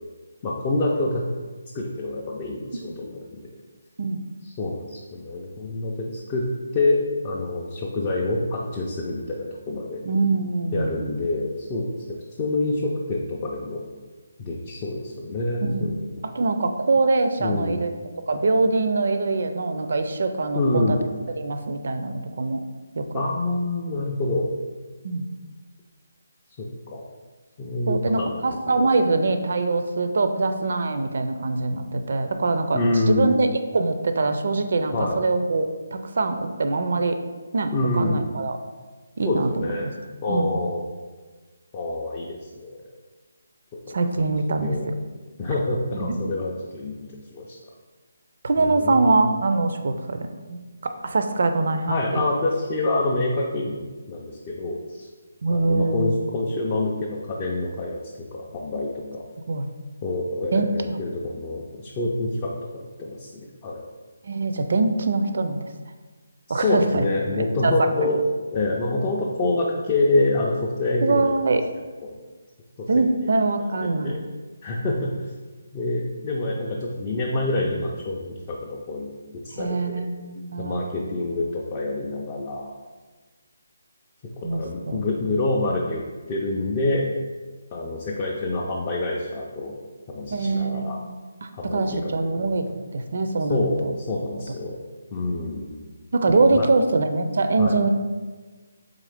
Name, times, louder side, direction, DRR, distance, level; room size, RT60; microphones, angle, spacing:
voice 1, 0.4-1.2 1.7-3.5 4.4-6.5 6.7-10.0 10.7-13.8 14.4-16.1 17.4-17.8 20.5-21.0 23.1-24.5 26.6-27.0 27.6-28.9 32.7-33.4 34.9-35.2 37.7-38.3 39.2-39.9 40.2-40.8 41.7-42.8 43.9-44.0 44.5-44.9 45.4-47.0 47.3-47.6 48.6-49.2 51.9-55.1 55.5-58.0 58.3-59.2 60.0-63.8 66.5-68.2 68.5-71.4 72.0-72.1 72.8-72.9 74.0-74.2 74.6-75.3 75.7-80.0 80.6-82.7 84.4-87.0 87.7-89.7 90.1-91.0 91.5-91.8 92.4-92.6 93.5-94.8 95.1-95.8 96.3-96.7 97.6-97.7, left 2 dB, 20° left, -3 dB, 0.3 m, -26 dB
voice 2, 10.0-11.2 15.6-17.9 18.3-21.0 21.4-22.6 23.0-23.2 25.0-25.3 27.9-33.5 33.7-37.2 37.5-38.6 39.2-39.9 40.3-40.6 43.9-44.9 45.9-46.2 48.4-52.3 55.4-56.2 59.5-59.7 60.5-61.0 64.2-65.7 66.5-67.0 67.3-67.7 68.0-68.1 71.0-71.6 72.9-74.2 79.5-81.0 84.4-85.0 90.3-91.1 91.4-92.7 92.9-93.9 96.1-97.9, right 3 dB, 55° right, 7 dB, 0.4 m, -23 dB
3.8 x 3.6 x 3.4 m, 1.3 s
hypercardioid pair, 170°, 0 cm